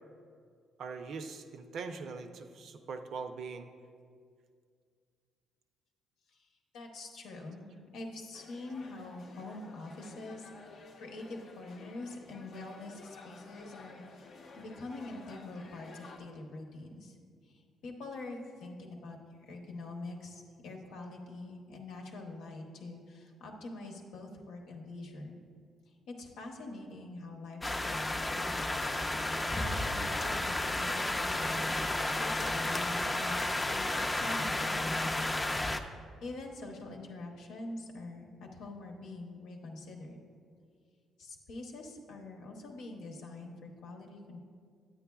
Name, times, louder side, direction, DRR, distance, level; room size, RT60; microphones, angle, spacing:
voice 1, 0.8-3.7, right 4 dB, 70° right, 7 dB, 0.5 m, -41 dB
voice 2, 6.7-14.0 14.6-17.2 17.4-25.4 25.9-29.2 29.5-31.8 32.2-35.3 36.2-40.2 41.2-44.4, left 2 dB, 85° left, 1 dB, 0.9 m, -45 dB
sound 1, 8.3-16.2, left 3 dB, 65° left, 0.7 m, -53 dB
sound 2, 27.6-35.8, left 2 dB, 15° left, 0.4 m, -32 dB
9.3 x 8.7 x 2.3 m, 2.2 s
cardioid pair, 90°, 0 cm